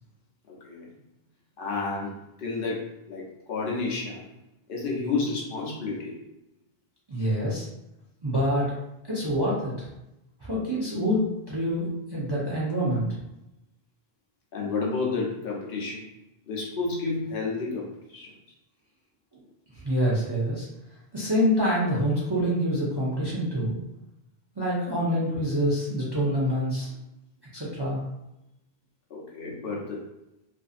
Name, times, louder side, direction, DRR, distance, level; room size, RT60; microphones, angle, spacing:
voice 1, 0.5-0.9 1.6-4.3 4.7-6.2 14.5-16.1 16.5-18.3 29.1-30.0, left 4 dB, 65° left, -3 dB, 0.8 m, -31 dB
voice 2, 7.1-7.6 8.2-8.8 9.1-9.9 10.4-13.1 19.8-20.7 21.1-23.8 24.6-26.9 27.5-28.0, equal, 30° right, -7 dB, 0.5 m, -26 dB
2.5 x 2.5 x 2.4 m, 0.88 s
omnidirectional pair, 1.0 m